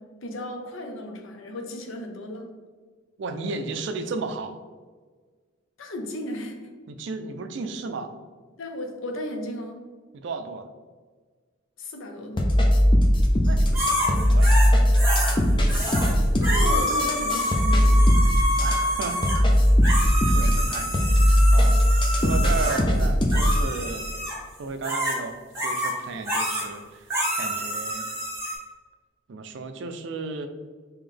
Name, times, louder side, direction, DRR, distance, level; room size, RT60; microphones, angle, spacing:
voice 1, 0.0-2.5 5.8-6.6 8.6-9.8 11.8-12.5 16.1-18.1, left 1 dB, 75° left, 3 dB, 0.6 m, -35 dB
voice 2, 3.2-4.6 6.9-8.1 10.1-10.7 13.4-14.5 18.6-19.2 19.9-21.7 22.1-24.1 24.6-25.3 25.6-28.1 29.3-30.5, right 3 dB, 60° right, 8 dB, 0.3 m, -34 dB
sound 1, 12.4-23.7, equal, 25° left, 0.4 m, -19 dB
sound 2, 13.7-15.4 15.7-16.1 16.4-22.8 23.3-24.4 24.8-25.2 25.5-25.9 26.2-26.7 27.1-28.6, equal, 15° right, 1.1 m, -28 dB
3.8 x 3.0 x 3.2 m, 1.5 s
head